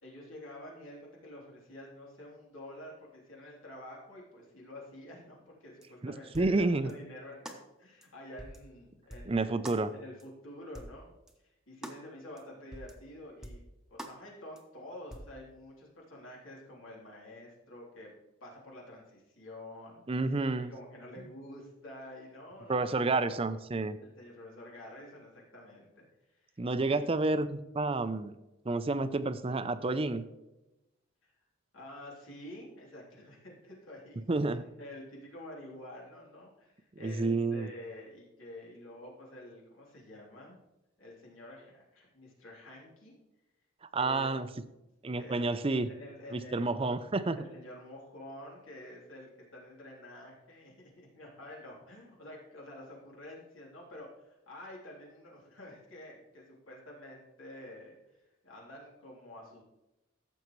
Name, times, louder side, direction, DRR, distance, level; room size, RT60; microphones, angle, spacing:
voice 1, 0.0-11.1 11.7-13.6 13.9-18.1 18.4-23.3 24.0-26.0 26.4-27.1 31.7-34.3 34.8-40.6 41.0-43.2 44.0-44.3 45.2-45.4 45.8-46.9 47.3-58.2 58.4-59.6, left 1 dB, 90° left, -3 dB, 3.3 m, -49 dB
sound 1, 5.8-5.9 6.3-6.6 6.9-7.0 7.4-7.6 8.0-8.1 8.4-8.6 9.1-9.3 9.6-9.8 10.2-10.3 10.7-11.0 11.3-11.4 11.8-12.0 12.4-12.5 12.7-13.0 13.4-13.6 14.0-14.2 14.6-14.7 15.1-15.3, right 1 dB, 5° right, 0.9 m, -45 dB
voice 2, 6.0-6.9 9.3-9.9 20.1-20.7 22.7-24.0 26.6-28.3 28.6-30.3 34.3-34.6 37.0-37.7 43.9-44.5 45.0-45.9 46.3-47.4, right 3 dB, 30° right, 12 dB, 0.5 m, -30 dB
14.5 x 7.1 x 3.1 m, 0.96 s
head